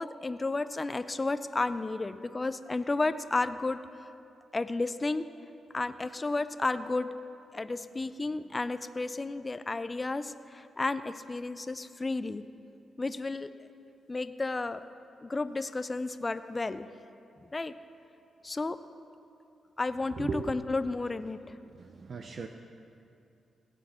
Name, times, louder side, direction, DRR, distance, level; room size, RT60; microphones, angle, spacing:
voice 1, 0.0-3.8 4.5-5.3 5.7-7.1 7.5-12.4 13.0-13.7 14.1-14.8 15.2-16.9 17.5-17.7 18.4-18.8 19.8-21.6, left 3 dB, 30° left, 12 dB, 0.4 m, -32 dB
voice 2, 20.2-20.6 21.6-22.5, right 4 dB, 55° right, 5 dB, 0.5 m, -37 dB
17.0 x 8.2 x 4.3 m, 2.6 s
cardioid pair, 70°, 0 cm